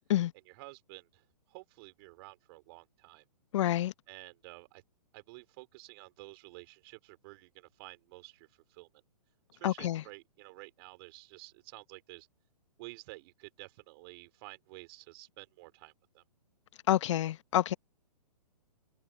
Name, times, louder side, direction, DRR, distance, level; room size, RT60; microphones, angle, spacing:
voice 1, 0.4-3.2 4.1-4.8 5.1-8.9 9.5-12.3 12.8-16.2, right 24 dB, 35° right, 3.4 m, -51 dB
voice 2, 3.5-3.9 9.6-10.0 16.9-17.7, left 13 dB, 50° left, 0.9 m, -28 dB
figure-of-eight pair, 125°, 20 cm